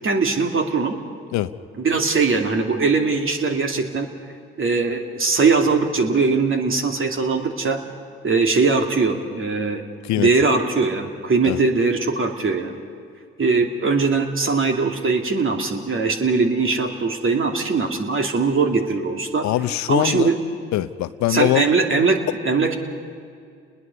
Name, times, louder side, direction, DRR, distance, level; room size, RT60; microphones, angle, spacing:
voice 1, 0.0-0.9 1.8-4.1 4.6-7.8 8.2-9.8 10.1-12.8 13.4-19.5 19.9-20.4 21.3-22.8, right 4 dB, 40° right, 3 dB, 2.6 m, -21 dB
voice 2, 19.4-20.3 20.7-21.7, left 14 dB, 65° left, 14 dB, 0.7 m, -22 dB
30.0 x 20.5 x 5.4 m, 2.2 s
hypercardioid pair, 45°, 31 cm